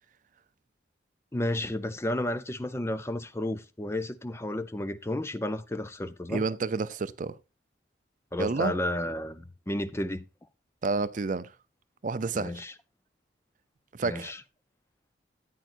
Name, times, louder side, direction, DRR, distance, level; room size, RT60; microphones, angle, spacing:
voice 1, 1.3-6.4 8.3-10.2 12.3-12.7 14.0-14.4, left 1 dB, 15° left, 0.5 m, -32 dB
voice 2, 6.3-7.3 8.4-8.7 10.8-11.5 12.0-12.6 13.9-14.3, right 4 dB, 45° right, 0.5 m, -30 dB
13.5 x 9.2 x 2.5 m
head